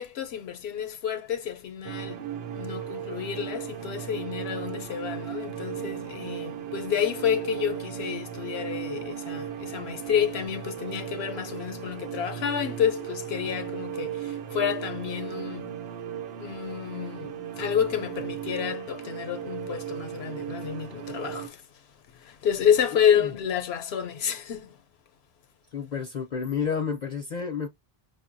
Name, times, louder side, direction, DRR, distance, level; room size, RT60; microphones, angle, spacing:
voice 1, 0.0-2.2 2.5-15.8 16.4-21.6 22.1-24.7, left 8 dB, 80° left, 0.8 m, -29 dB
sound 1, 1.8-21.5, right 10 dB, 80° right, 0.8 m, -36 dB
voice 2, 25.7-27.7, left 6 dB, 50° left, 0.6 m, -30 dB
5.3 x 2.2 x 2.5 m
omnidirectional pair, 1.1 m